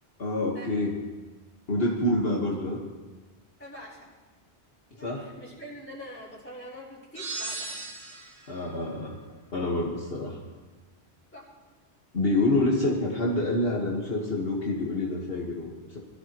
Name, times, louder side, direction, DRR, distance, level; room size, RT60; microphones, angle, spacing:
voice 1, 0.2-0.9 1.7-2.8 5.0-5.3 8.5-9.2 9.5-10.4 12.1-16.0, left 2 dB, 60° left, -3 dB, 1.8 m, -27 dB
voice 2, 3.6-4.1 5.0-7.9 11.3-11.5, equal, 10° left, -6 dB, 4.3 m, -44 dB
sound 1, 7.2-8.5, right 3 dB, 65° right, 1.9 m, -36 dB
21.5 x 13.5 x 3.1 m, 1.3 s
omnidirectional pair, 1.1 m